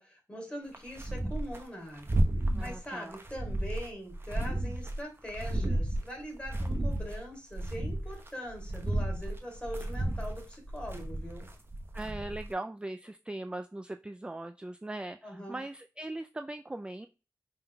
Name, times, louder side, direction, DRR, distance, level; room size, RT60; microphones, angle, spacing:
voice 1, 0.0-2.2 2.6-11.5 15.2-15.6, equal, 15° left, 0 dB, 2.5 m, -42 dB
sound 1, 0.7-1.6 1.9-2.8 3.1-5.0 5.3-7.2 7.5-12.5, right 1 dB, 35° right, 0.9 m, -32 dB
voice 2, 2.6-3.2 11.9-17.1, right 2 dB, 15° right, 8 dB, 0.3 m, -40 dB
5.4 x 3.6 x 2.2 m, 0.33 s
cardioid pair, 45°, 7 cm